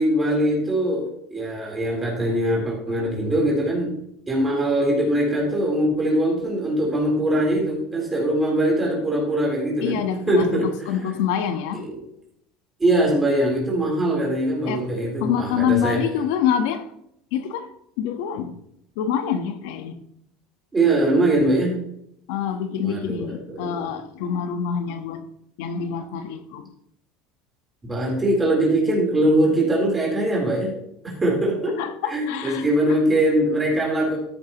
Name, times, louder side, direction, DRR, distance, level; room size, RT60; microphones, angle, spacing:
voice 1, 0.0-3.9 4.3-10.7 11.9-12.0 12.8-16.0 20.7-21.8 22.8-23.9 27.8-30.7 31.0-31.8 32.1-34.2, right 1 dB, 15° right, 3.8 m, -22 dB
voice 2, 9.8-11.8 14.7-14.8 15.2-16.9 17.3-17.7 18.0-18.5 19.0-20.0 22.3-25.2 25.6-26.7 31.8-32.6, left 8 dB, 75° left, 1.2 m, -26 dB
13.5 x 10.5 x 3.0 m
supercardioid pair, 135°, 0 cm